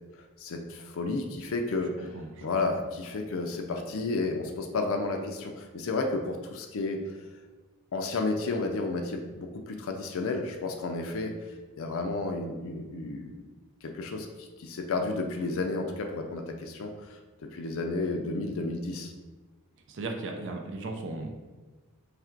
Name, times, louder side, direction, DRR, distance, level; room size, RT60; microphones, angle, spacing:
voice 1, 0.2-2.1 2.4-7.0 7.9-11.3 11.8-13.4 13.8-17.2 17.5-19.1, left 3 dB, 65° left, 4 dB, 0.4 m, -32 dB
voice 2, 2.0-2.5 19.9-21.3, right 2 dB, 55° right, 2 dB, 0.5 m, -36 dB
3.3 x 2.5 x 4.4 m, 1.3 s
head